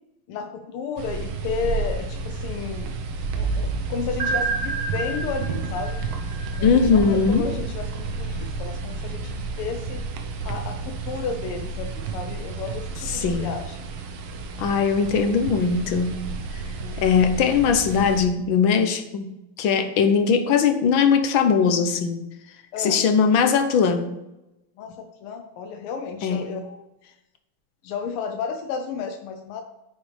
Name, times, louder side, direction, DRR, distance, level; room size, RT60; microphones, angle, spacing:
voice 1, 0.3-2.9 3.3-6.1 6.6-10.0 10.4-13.9 16.8-17.1 22.7-23.1 24.8-26.8 27.8-29.6, left 5 dB, 90° left, 5 dB, 1.6 m, -32 dB
sound 1, 1.0-18.3, right 4 dB, 70° right, 1.6 m, -31 dB
sound 2, 4.2-7.1, right 3 dB, 55° right, 1.4 m, -30 dB
voice 2, 6.6-7.5 13.1-13.5 14.6-16.2 17.0-19.3 19.6-22.2 22.8-24.1 26.2-26.5, left 6 dB, 70° left, 8 dB, 1.5 m, -20 dB
9.5 x 6.2 x 3.3 m, 0.92 s
omnidirectional pair, 2.4 m